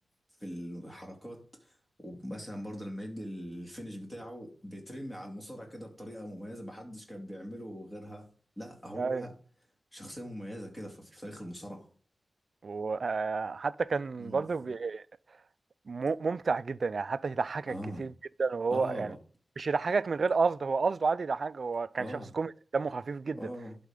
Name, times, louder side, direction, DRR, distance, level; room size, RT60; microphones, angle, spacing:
voice 1, 0.4-8.3 8.6-9.4 9.9-11.9 14.2-14.5 17.7-18.1 18.7-19.2 22.0-22.3 23.4-23.8, equal, 20° left, 2.5 m, -42 dB
voice 2, 12.6-15.0 15.9-18.1 18.4-19.1 19.6-23.4, right 4 dB, 55° right, 0.3 m, -30 dB
11.5 x 4.2 x 3.7 m
wide cardioid pair, 135°, 0 cm